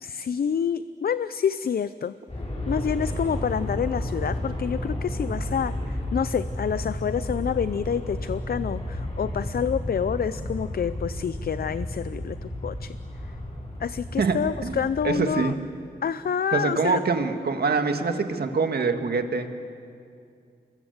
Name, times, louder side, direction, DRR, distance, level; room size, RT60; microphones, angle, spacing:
voice 1, 0.0-2.1 2.7-13.0 13.8-15.5 16.0-17.0, left 7 dB, 65° left, 14 dB, 0.5 m, -28 dB
Aircraft, 2.3-15.1, left 1 dB, 40° left, 6.1 m, -32 dB
voice 2, 15.0-15.6 16.5-19.5, right 4 dB, 75° right, 6 dB, 1.9 m, -24 dB
28.0 x 21.5 x 8.0 m, 2.3 s
wide cardioid pair, 80°, 16 cm